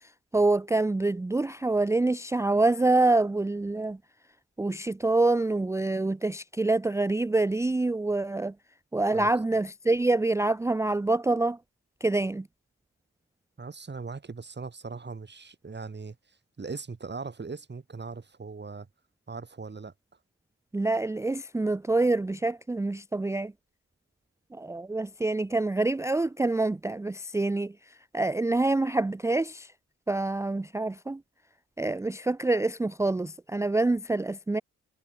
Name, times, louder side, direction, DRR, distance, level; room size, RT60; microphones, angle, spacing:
voice 1, 0.0-4.0 4.6-8.5 8.9-11.6 12.0-12.5 20.7-23.5 24.5-29.7 30.1-31.2 31.8-34.6, right 2 dB, 10° right, 0.4 m, -26 dB
voice 2, 13.6-18.9 19.3-19.9, right 4 dB, 35° right, 4.0 m, -40 dB
cardioid pair, 75°, 30 cm